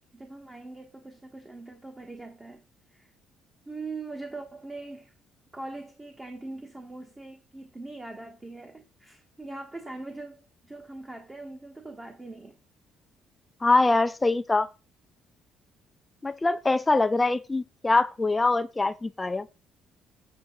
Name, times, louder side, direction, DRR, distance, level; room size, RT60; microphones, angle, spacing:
voice 1, 0.1-2.6 2.9-3.1 3.7-5.1 5.5-12.6, right 2 dB, 15° right, 1.2 m, -41 dB
voice 2, 13.6-14.7 16.2-19.5, left 3 dB, 15° left, 0.5 m, -23 dB
7.5 x 7.4 x 3.9 m
cardioid pair, 160°, 0 cm